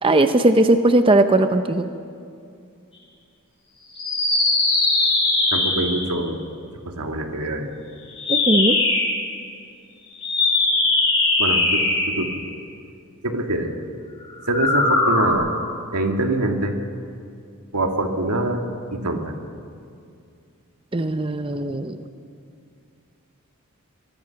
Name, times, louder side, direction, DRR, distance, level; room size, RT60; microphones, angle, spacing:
voice 1, 0.0-1.8 8.3-8.8 20.9-22.0, right 2 dB, 25° right, 8 dB, 0.7 m, -18 dB
sound 1, 3.9-6.1 8.1-9.2 10.2-12.3 14.4-15.3, left 2 dB, 25° left, 6.3 m, -20 dB
voice 2, 5.5-6.4 6.9-7.7 11.4-12.4 13.2-13.7 14.5-15.5 15.9-16.8 17.7-18.6 18.9-19.3, right 2 dB, 90° right, 3 dB, 2.2 m, -24 dB
25.0 x 22.0 x 5.9 m, 2.4 s
head